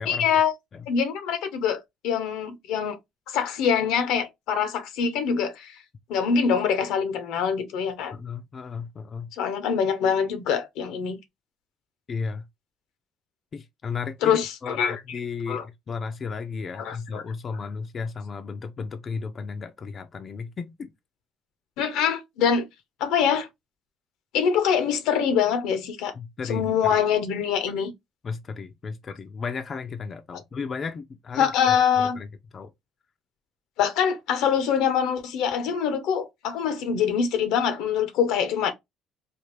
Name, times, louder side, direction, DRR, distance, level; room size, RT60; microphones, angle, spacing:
voice 1, 0.1-0.5 0.9-3.0 3.3-5.7 6.1-8.1 9.4-11.2 14.2-15.0 15.5-15.6 16.8-17.2 21.8-22.7 23.0-23.5 24.3-26.1 26.5-27.9 31.4-32.2 33.8-38.7, left 7 dB, 85° left, 0.7 m, -24 dB
voice 2, 8.1-9.3 12.1-12.5 13.5-20.9 26.1-27.0 28.2-32.3 32.5-32.7, left 5 dB, 40° left, 0.4 m, -34 dB
3.3 x 2.4 x 3.2 m
cardioid pair, 85°, 0 cm